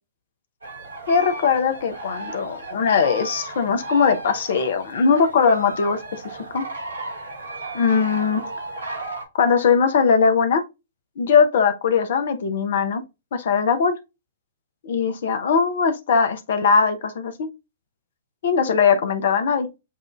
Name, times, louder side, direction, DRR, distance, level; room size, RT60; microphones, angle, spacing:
sound 1, 0.6-9.2, right 2 dB, 85° right, 1.9 m, -34 dB
voice 1, 1.1-6.0 6.5-6.7 7.7-8.4 9.3-10.6 11.2-13.0 13.3-14.0 14.8-17.5 18.4-19.7, left 6 dB, 60° left, 0.8 m, -20 dB
7.4 x 2.6 x 2.4 m
figure-of-eight pair, 115°, 0 cm